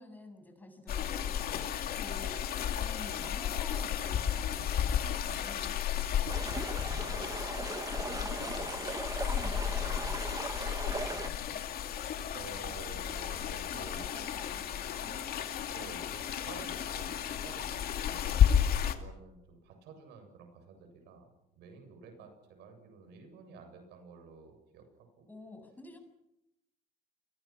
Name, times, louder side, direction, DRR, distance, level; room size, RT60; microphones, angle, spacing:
voice 1, 0.0-2.4 2.7-7.2 7.6-10.3 10.8-11.7 13.7-15.3 22.2-22.3 25.3-26.0, left 1 dB, 10° left, 5 dB, 7.7 m, -51 dB
sound 1, 0.9-19.0, left 9 dB, 60° left, 2.5 m, -33 dB
voice 2, 4.4-4.9 6.9-7.5 12.3-14.1 15.7-21.3 21.5-24.9 25.2-25.3, right 5 dB, 85° right, 6 dB, 7.7 m, -51 dB
sound 2, 6.3-11.3, right 3 dB, 20° right, 1.6 m, -39 dB
30.0 x 22.5 x 6.2 m, 0.86 s
cardioid pair, 110°, 17 cm